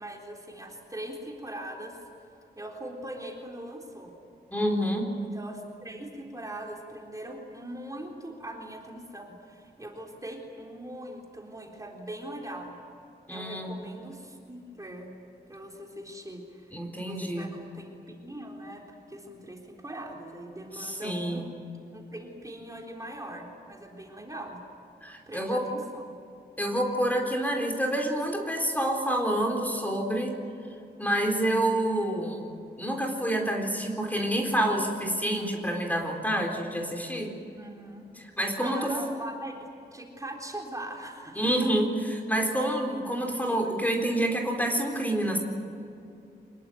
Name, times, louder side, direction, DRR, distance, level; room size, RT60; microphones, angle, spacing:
voice 1, 0.0-2.1 2.6-4.1 5.2-12.8 13.3-15.1 15.5-16.8 17.0-21.5 21.9-24.6 25.3-26.1 37.5-38.1 38.6-41.5 43.6-43.7, right 1 dB, 20° right, 0 dB, 3.8 m, -41 dB
voice 2, 4.5-5.1 13.3-13.8 16.7-17.5 20.7-21.5 25.0-25.7 26.6-30.3 31.0-32.5 32.8-37.3 38.2-38.9 41.3-45.4, right 1 dB, 10° left, 2 dB, 4.1 m, -28 dB
26.0 x 21.5 x 9.3 m, 2.7 s
wide cardioid pair, 110°, 18 cm